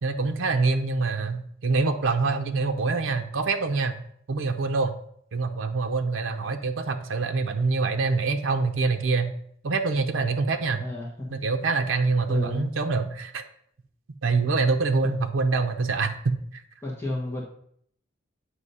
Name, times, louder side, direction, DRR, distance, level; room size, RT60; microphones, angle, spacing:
voice 1, 0.0-5.0 5.3-9.3 9.6-10.9 11.3-13.4 14.2-16.6, right 4 dB, 85° right, 6 dB, 0.6 m, -25 dB
voice 2, 10.8-11.4 12.3-12.7 16.8-17.4, left 1 dB, 10° left, -4 dB, 1.1 m, -32 dB
8.1 x 2.7 x 5.4 m, 0.65 s
head